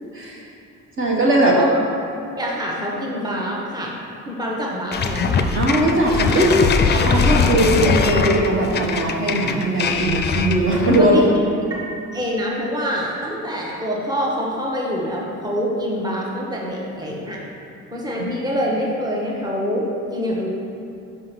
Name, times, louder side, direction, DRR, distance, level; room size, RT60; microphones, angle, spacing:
voice 1, 1.0-1.6 5.5-6.6 6.9-11.2, right 1 dB, 45° right, -3 dB, 1.1 m, -19 dB
voice 2, 2.4-3.9 4.3-5.3 11.0-11.2 12.1-17.4 17.9-20.5, equal, 15° right, -3 dB, 1.1 m, -25 dB
sound 1, 4.9-11.2, left 4 dB, 35° left, 0.5 m, -21 dB
5.5 x 3.8 x 5.9 m, 2.6 s
cardioid pair, 90°, 30 cm